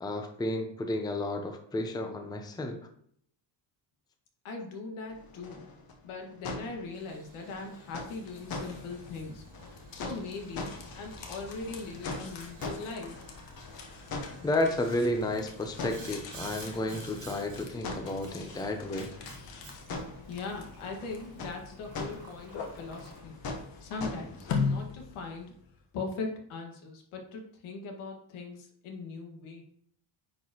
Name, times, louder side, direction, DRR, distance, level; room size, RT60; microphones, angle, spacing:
voice 1, 0.0-2.8 14.4-19.1, left 1 dB, 10° left, 5 dB, 0.6 m, -32 dB
voice 2, 4.4-5.7 6.0-13.2 20.3-23.3 23.8-25.5 25.9-29.6, left 3 dB, 85° left, 2 dB, 1.8 m, -40 dB
sound 1, 5.1-24.9, left 3 dB, 45° left, 1.3 m, -43 dB
Boiling, 6.9-23.2, right 3 dB, 40° right, 1.7 m, -52 dB
sound 2, 7.8-25.8, left 5 dB, 60° left, 1.3 m, -42 dB
9.6 x 4.6 x 3.0 m, 0.65 s
cardioid pair, 145°, 48 cm